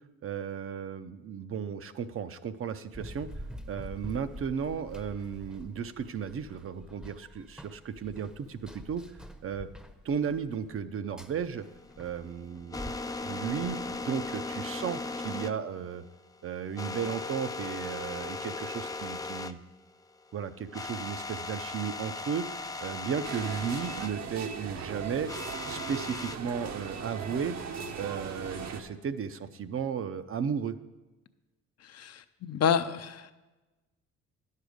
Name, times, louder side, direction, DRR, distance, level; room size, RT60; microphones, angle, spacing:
voice 1, 0.2-3.3 3.7-9.1 9.4-9.7 10.0-11.7 12.0-16.0 16.4-19.6 20.3-22.5 22.8-25.3 25.6-27.6 28.0-30.8, right 7 dB, 45° right, 11 dB, 0.6 m, -34 dB
Run, 2.9-14.3, equal, ahead, 0.7 m, -47 dB
sound 1, 11.6-19.5 19.8-19.9 20.3-20.4 20.7-24.1 25.3-26.4, left 3 dB, 15° left, 0.3 m, -38 dB
sound 2, 23.2-28.8, right 6 dB, 60° right, 0.9 m, -39 dB
voice 2, 31.8-33.3, left 7 dB, 55° left, 10 dB, 0.6 m, -29 dB
10.5 x 6.6 x 5.1 m, 1.1 s
cardioid pair, 90°, 30 cm